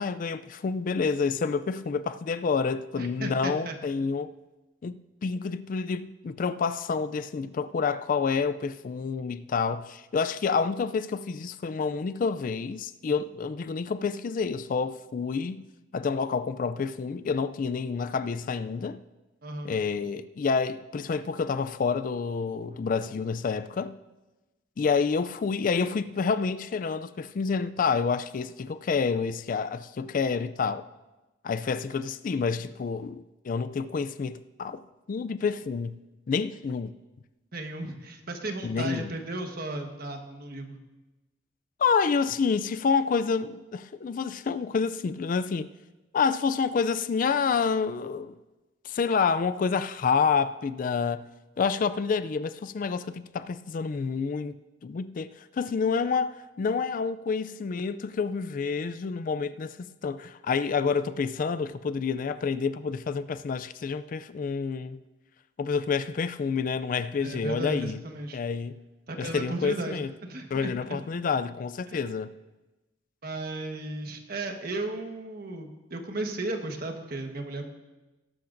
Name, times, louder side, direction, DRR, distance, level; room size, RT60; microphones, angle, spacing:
voice 1, 0.0-4.3 4.8-15.6 15.9-19.0 19.6-24.0 24.8-30.9 31.4-36.0 36.3-36.9 38.6-39.1 41.8-45.7 46.1-48.3 48.8-51.3 51.6-54.6 54.8-55.3 55.6-65.0 65.6-68.0 68.3-68.8 69.2-70.1 70.5-72.3, left 5 dB, 45° left, 0.3 m, -28 dB
voice 2, 3.0-3.8 19.4-19.7 37.5-40.8 67.2-68.4 69.1-71.0 71.9-72.1 73.2-77.7, right 2 dB, 55° right, 1.3 m, -35 dB
19.0 x 11.5 x 2.6 m
head